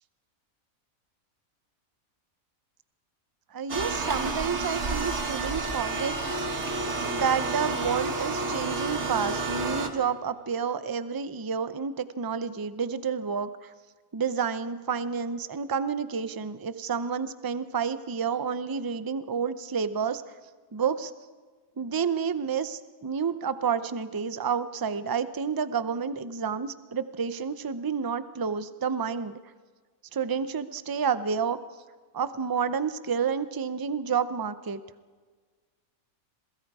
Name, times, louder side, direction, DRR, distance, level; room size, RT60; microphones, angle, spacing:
voice 1, 3.5-6.4 7.1-13.7 14.1-20.2 20.7-21.1 21.8-29.4 30.1-31.6 32.1-34.8, right 6 dB, 25° right, 13 dB, 0.4 m, -30 dB
sound 1, 3.7-9.9, right 3 dB, 55° right, 2.0 m, -30 dB
27.5 x 23.0 x 4.8 m, 1.5 s
omnidirectional pair, 1.5 m